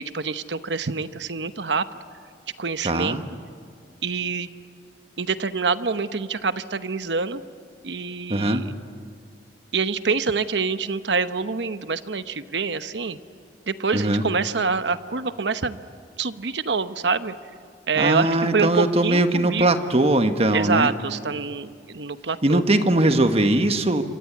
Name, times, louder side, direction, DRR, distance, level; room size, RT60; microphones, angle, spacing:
voice 1, 0.0-1.9 2.6-3.2 4.0-4.5 5.2-7.4 7.8-8.7 9.7-13.2 13.7-15.8 16.2-17.3 17.9-19.7 20.5-22.6, right 4 dB, 80° right, 11 dB, 1.0 m, -26 dB
voice 2, 2.8-3.2 8.3-8.6 13.9-14.2 18.0-20.9 22.4-24.0, right 1 dB, 35° right, 8 dB, 1.4 m, -20 dB
27.0 x 25.0 x 8.5 m, 2.2 s
head